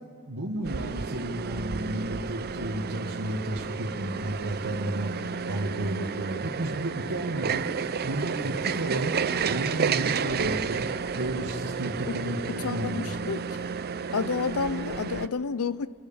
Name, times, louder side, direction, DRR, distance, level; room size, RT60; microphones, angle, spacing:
voice 1, 0.3-7.7 8.0-9.1 9.4-13.0, right 1 dB, 70° right, 1.9 m, -32 dB
sound 1, 0.6-15.3, right 6 dB, 45° right, 0.5 m, -31 dB
voice 2, 12.5-13.7 14.1-15.9, left 5 dB, 70° left, 0.6 m, -30 dB
29.5 x 12.5 x 8.8 m
head